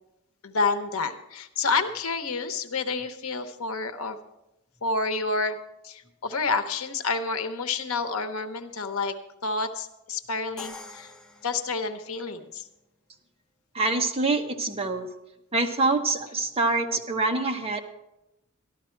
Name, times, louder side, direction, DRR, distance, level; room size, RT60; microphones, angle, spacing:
voice 1, 0.4-4.2 4.8-5.6 5.8-9.1 9.4-11.1 11.4-12.7, left 4 dB, 85° left, 9 dB, 0.9 m, -29 dB
Crash cymbal, 10.6-12.5, left 2 dB, 5° left, 0.9 m, -45 dB
voice 2, 13.7-15.1 15.5-17.8, right 3 dB, 30° right, 4 dB, 1.0 m, -25 dB
12.5 x 12.5 x 4.5 m, 0.92 s
head